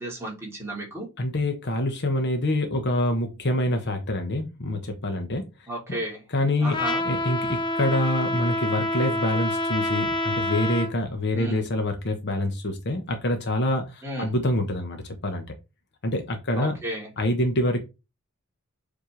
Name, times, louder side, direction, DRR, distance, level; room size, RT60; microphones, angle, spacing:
voice 1, 0.0-1.1 5.7-6.2 6.6-7.0 11.3-11.7 14.0-14.3 16.6-17.1, right 1 dB, 10° right, 3.0 m, -33 dB
voice 2, 1.2-5.4 6.3-6.8 7.1-15.5 16.0-16.8 17.2-17.8, left 1 dB, 50° left, 1.2 m, -26 dB
Trumpet, 6.7-10.9, left 1 dB, 20° left, 0.6 m, -27 dB
7.4 x 4.4 x 3.3 m
head